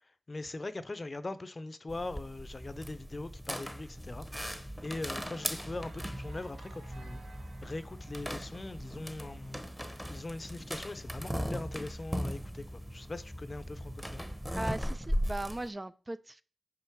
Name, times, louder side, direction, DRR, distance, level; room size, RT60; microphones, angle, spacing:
voice 1, 0.3-7.2 7.6-9.6 10.1-14.2, left 2 dB, 40° left, 0.6 m, -41 dB
sound 1, 1.9-15.7, equal, ahead, 0.9 m, -38 dB
sound 2, 5.1-10.4, right 4 dB, 80° right, 0.7 m, -56 dB
voice 2, 14.5-16.4, right 1 dB, 25° right, 0.3 m, -38 dB
5.7 x 5.2 x 4.6 m
cardioid pair, 50°, 0 cm